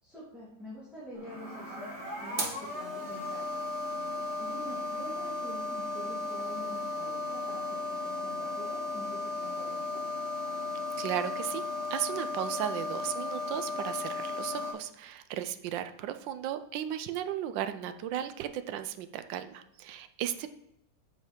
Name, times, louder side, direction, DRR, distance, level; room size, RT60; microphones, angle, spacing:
voice 1, 0.0-3.6 4.4-10.0, left 1 dB, ahead, -9 dB, 2.5 m, -47 dB
sound 1, 1.1-14.7, left 2 dB, 35° right, 1.9 m, -35 dB
voice 2, 10.9-11.6 11.9-20.5, right 11 dB, 80° right, 11 dB, 1.3 m, -35 dB
8.1 x 6.5 x 4.5 m, 0.84 s
omnidirectional pair, 2.1 m